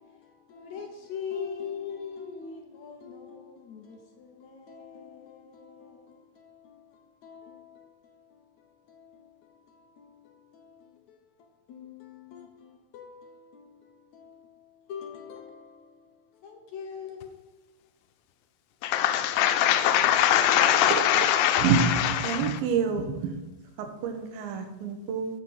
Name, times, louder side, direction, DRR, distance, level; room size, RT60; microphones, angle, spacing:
voice 1, 0.5-3.4 3.7-4.0 4.7-5.1 7.2-7.5 11.7-12.5 12.9-13.2 14.9-15.5 16.4-17.3, left 7 dB, 70° left, 1.8 m, -39 dB
voice 2, 18.8-22.6, left 11 dB, 85° left, 2.5 m, -23 dB
voice 3, 21.6-23.4 24.0-25.3, right 6 dB, 90° right, 2.8 m, -27 dB
8.0 x 5.6 x 6.3 m
omnidirectional pair, 4.1 m